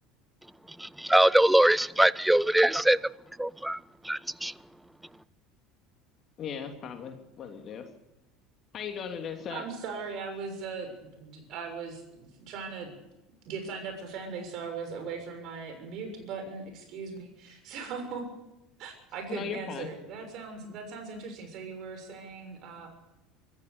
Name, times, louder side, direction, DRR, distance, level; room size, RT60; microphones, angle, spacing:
voice 1, 0.8-3.0 3.4-4.5, right 1 dB, 5° right, 22 dB, 0.7 m, -23 dB
voice 2, 6.4-7.8 8.7-9.6 19.3-19.9, left 7 dB, 40° left, 4 dB, 2.9 m, -37 dB
voice 3, 9.5-12.9 13.4-18.2 18.8-22.9, right 5 dB, 55° right, 6 dB, 6.5 m, -39 dB
25.5 x 15.0 x 7.0 m, 0.92 s
hypercardioid pair, 70°, 0 cm